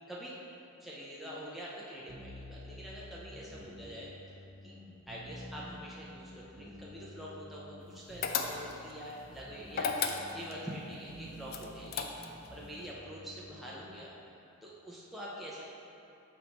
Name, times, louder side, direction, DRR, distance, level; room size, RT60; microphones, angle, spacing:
voice 1, 0.8-4.1 4.6-4.7 5.1-10.0 10.2-14.1 14.6-15.7, equal, ahead, -7 dB, 0.6 m, -45 dB
sound 1, 2.1-14.0, left 1 dB, 40° right, 0.9 m, -51 dB
sound 2, 8.2-8.9 9.7-10.6 11.5-12.5, left 5 dB, 45° left, 0.4 m, -34 dB
6.0 x 4.1 x 4.3 m, 2.9 s
head